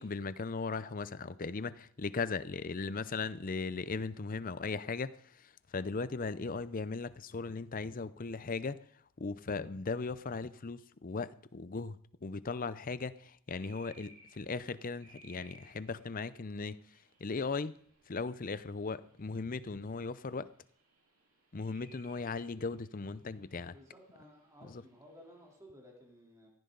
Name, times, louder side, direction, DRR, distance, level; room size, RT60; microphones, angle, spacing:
voice 1, 0.0-8.8 9.2-16.8 17.2-17.8 18.1-20.5 21.5-23.8 24.6-24.8, left 4 dB, 40° left, 0.6 m, -38 dB
sound 1, 13.6-25.6, right 2 dB, 75° right, 3.7 m, -64 dB
voice 2, 23.7-26.5, equal, 15° right, 3.4 m, -56 dB
16.0 x 14.5 x 3.9 m
head